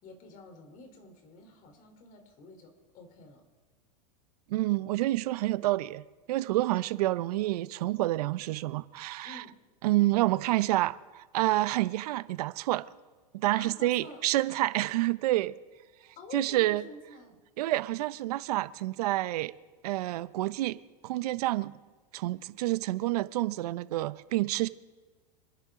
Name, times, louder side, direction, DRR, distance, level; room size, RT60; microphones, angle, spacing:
voice 1, 0.0-3.4 9.2-9.6 13.5-14.3 16.2-17.4, left 3 dB, 40° left, 3.5 m, -49 dB
voice 2, 4.5-6.0 6.3-9.4 9.8-12.9 13.3-15.5 16.3-16.8 17.6-19.5 19.8-20.8 21.0-21.7 22.1-24.7, right 17 dB, 70° right, 0.7 m, -28 dB
26.0 x 10.5 x 3.7 m
hypercardioid pair, 115°, 21 cm